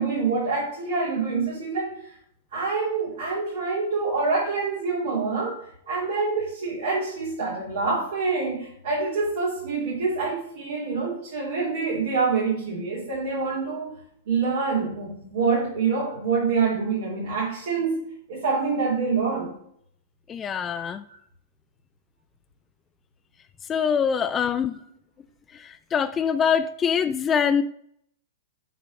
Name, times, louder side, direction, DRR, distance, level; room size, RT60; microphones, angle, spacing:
voice 1, 0.0-2.1 2.5-13.9 14.3-18.0 18.3-19.6 20.7-21.2 24.2-24.3, right 4 dB, 70° right, -7 dB, 3.7 m, -26 dB
voice 2, 20.3-21.0 23.7-24.8 25.6-27.6, left 7 dB, 25° left, 11 dB, 0.4 m, -24 dB
8.4 x 4.1 x 5.4 m, 0.67 s
hypercardioid pair, 110°, 0 cm